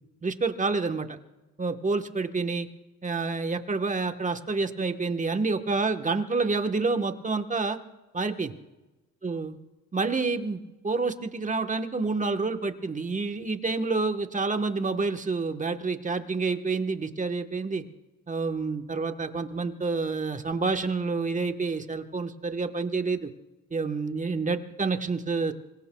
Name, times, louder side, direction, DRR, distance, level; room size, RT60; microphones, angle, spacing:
voice 1, 0.2-1.2 1.6-2.7 3.0-7.8 8.1-8.6 9.2-9.6 9.9-17.8 18.3-23.3 23.7-25.5, right 4 dB, 25° right, 7 dB, 1.2 m, -28 dB
26.5 x 23.5 x 2.3 m, 1.1 s
cardioid pair, 90°, 30 cm